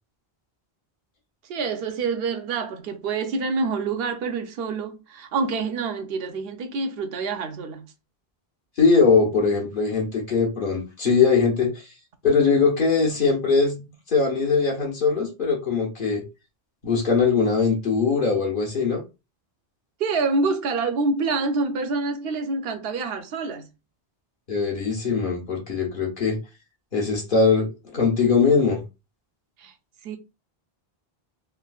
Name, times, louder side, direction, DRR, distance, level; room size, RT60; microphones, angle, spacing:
voice 1, 1.4-7.9 20.0-23.7 29.6-29.7 30.0-30.2, right 4 dB, 75° right, 0.8 m, -27 dB
voice 2, 8.8-11.7 12.2-13.8 14.1-16.2 16.8-19.0 24.5-26.4 26.9-28.8, left 5 dB, 60° left, 1.1 m, -21 dB
3.6 x 2.5 x 2.3 m
omnidirectional pair, 1.0 m